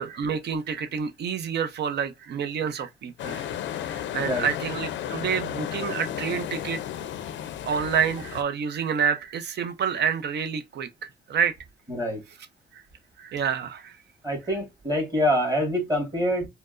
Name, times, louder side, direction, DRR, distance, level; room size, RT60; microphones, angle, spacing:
voice 1, 0.0-3.5 3.8-7.1 7.6-11.5 12.7-12.8 13.2-14.0, right 7 dB, 60° right, 0.6 m, -28 dB
sound 1, 3.2-8.4, left 10 dB, 70° left, 0.5 m, -33 dB
voice 2, 4.1-4.5 11.9-12.2 14.2-16.5, equal, 20° right, 1.6 m, -25 dB
4.3 x 2.0 x 2.5 m
cardioid pair, 90°, 20 cm